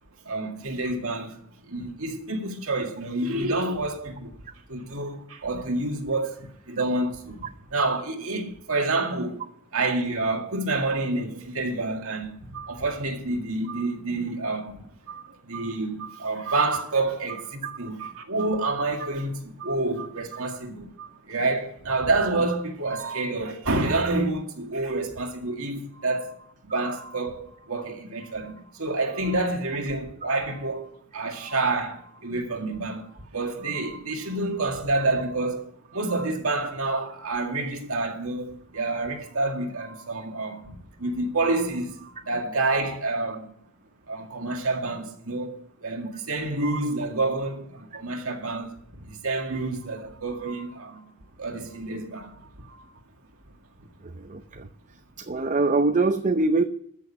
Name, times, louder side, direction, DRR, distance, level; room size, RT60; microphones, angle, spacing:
voice 1, 0.3-1.4 1.7-4.4 4.7-9.4 9.7-43.5 44.1-48.8 49.1-51.1 51.4-52.9 53.8-53.9, right 2 dB, 70° right, 2.1 m, -28 dB
voice 2, 54.0-54.7 55.2-56.6, right 3 dB, 35° right, 0.6 m, -23 dB
14.0 x 6.6 x 7.4 m
head